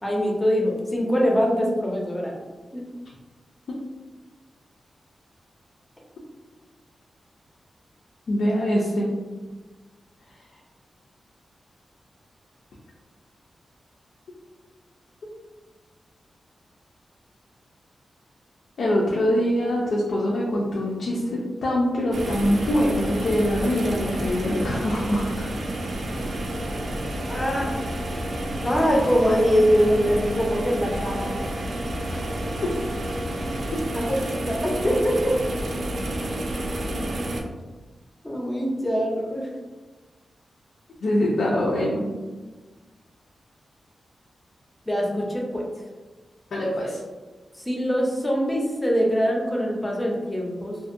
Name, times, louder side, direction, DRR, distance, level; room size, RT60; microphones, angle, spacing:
voice 1, 0.0-2.3 2.7-2.8 27.3-27.7 28.6-31.4 33.9-35.4 38.2-39.5 44.9-45.6 47.5-50.8, equal, 10° left, -1 dB, 0.4 m, -23 dB
voice 2, 8.3-9.1 18.8-25.5 32.1-32.2 41.0-42.1 46.5-47.0, left 1 dB, 80° left, -4 dB, 0.4 m, -24 dB
sound 1, 22.1-37.4, right 1 dB, 60° right, 0.3 m, -30 dB
2.5 x 2.1 x 2.4 m, 1.3 s
wide cardioid pair, 180°, 0 cm